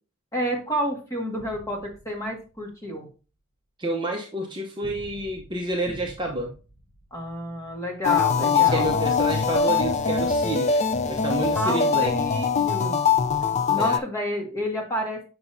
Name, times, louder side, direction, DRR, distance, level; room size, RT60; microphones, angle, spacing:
voice 1, 0.3-3.1 7.1-8.9 11.5-13.0 13.7-15.3, equal, 15° left, -2 dB, 1.8 m, -29 dB
sound 1, 1.4-2.8 4.8-7.8 8.8-11.0, equal, 50° left, 1.2 m, -46 dB
voice 2, 3.8-6.5 8.4-12.1 13.8-14.0, right 2 dB, 20° right, 0 dB, 0.8 m, -29 dB
sound 2, 8.0-14.0, left 6 dB, 35° left, 0.4 m, -22 dB
7.6 x 5.9 x 2.7 m, 0.34 s
head